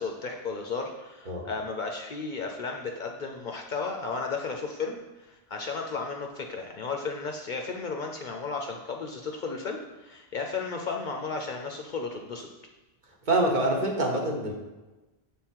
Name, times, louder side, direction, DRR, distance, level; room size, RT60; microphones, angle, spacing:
voice 1, 0.0-12.5, left 4 dB, 55° left, 2 dB, 0.6 m, -34 dB
voice 2, 13.3-14.5, right 1 dB, 50° right, 0 dB, 1.1 m, -25 dB
6.8 x 3.7 x 4.4 m, 1.1 s
omnidirectional pair, 1.1 m